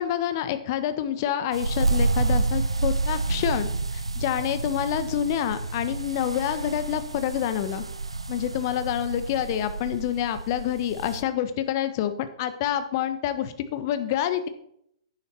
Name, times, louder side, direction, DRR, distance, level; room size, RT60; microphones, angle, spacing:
voice 1, 0.0-7.8 8.3-14.5, left 10 dB, 40° left, 10 dB, 1.1 m, -27 dB
sound 1, 1.5-11.2, right 3 dB, 80° right, 0.8 m, -29 dB
10.5 x 9.5 x 4.4 m, 0.71 s
figure-of-eight pair, 115°, 3 cm